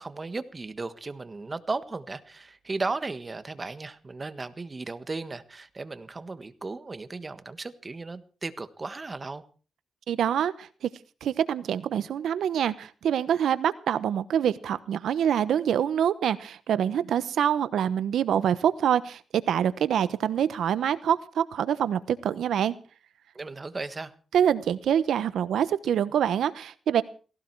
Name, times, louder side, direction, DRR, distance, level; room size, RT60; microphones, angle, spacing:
voice 1, 0.0-9.4 23.3-24.1, right 3 dB, 25° right, 12 dB, 1.5 m, -35 dB
voice 2, 10.1-10.9 11.2-22.7 24.3-27.0, right 9 dB, 85° right, 15 dB, 1.0 m, -25 dB
18.0 x 17.0 x 4.7 m, 0.39 s
cardioid pair, 110°, 0 cm